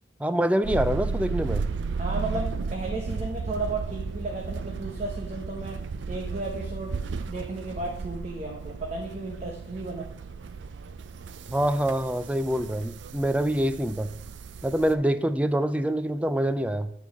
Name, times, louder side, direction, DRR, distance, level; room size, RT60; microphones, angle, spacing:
voice 1, 0.2-1.7 11.5-14.2 14.6-16.9, right 1 dB, 5° right, 11 dB, 0.4 m, -25 dB
sound 1, 0.6-14.9, right 4 dB, 80° right, 0.4 m, -34 dB
voice 2, 2.0-5.8 6.1-10.1, right 2 dB, 35° right, -1 dB, 1.0 m, -34 dB
9.1 x 4.7 x 5.8 m, 0.80 s
head